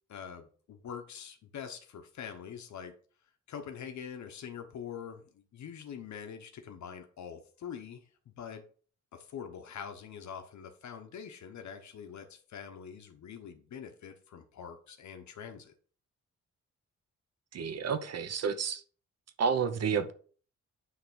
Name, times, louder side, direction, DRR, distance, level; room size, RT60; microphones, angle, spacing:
voice 1, 0.1-2.9 3.5-8.1 8.4-8.6 9.1-15.7, left 7 dB, 70° left, 1.1 m, -44 dB
voice 2, 17.5-18.8 19.4-20.1, right 6 dB, 55° right, 0.8 m, -30 dB
9.5 x 3.4 x 6.2 m
wide cardioid pair, 165°, 30 cm